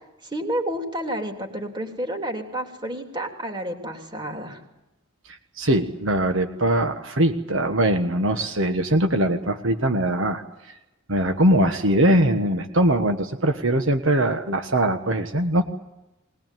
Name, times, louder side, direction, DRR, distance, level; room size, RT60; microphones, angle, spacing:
voice 1, 0.2-4.6, right 1 dB, 25° right, 3 dB, 3.3 m, -30 dB
voice 2, 5.3-10.7 11.1-15.6, right 1 dB, 70° right, 7 dB, 1.5 m, -21 dB
21.0 x 21.0 x 9.3 m, 0.94 s
head